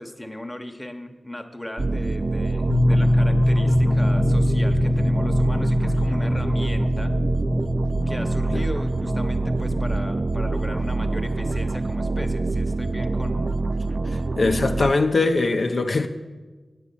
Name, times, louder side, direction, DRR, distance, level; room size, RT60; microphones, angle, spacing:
voice 1, 0.0-7.1 8.1-13.5, left 1 dB, 10° left, 0.9 m, -36 dB
sound 1, 1.8-14.9, right 3 dB, 40° right, 0.3 m, -25 dB
sound 2, 2.7-12.2, left 1 dB, 85° left, 0.7 m, -24 dB
voice 2, 14.1-16.1, left 3 dB, 55° left, 0.5 m, -22 dB
8.6 x 8.2 x 6.9 m
wide cardioid pair, 90°, 0 cm